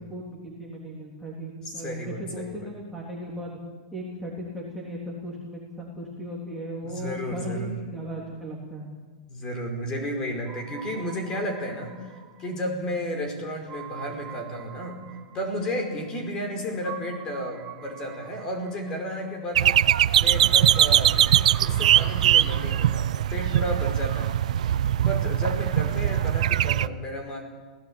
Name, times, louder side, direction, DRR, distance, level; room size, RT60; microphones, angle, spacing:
voice 1, 0.1-3.6 3.9-8.9, equal, ahead, -5 dB, 3.4 m, -36 dB
voice 2, 1.7-2.6 6.8-7.7 9.3-12.1 12.4-15.0 15.3-19.8 20.2-24.4 25.0-27.4, equal, 20° left, 4 dB, 4.8 m, -32 dB
sound 1, 10.4-23.5, right 10 dB, 20° right, 1.2 m, -45 dB
sound 2, 19.6-26.9, right 11 dB, 75° right, 0.6 m, -21 dB
27.0 x 17.0 x 8.8 m, 1.4 s
supercardioid pair, 165°, 4 cm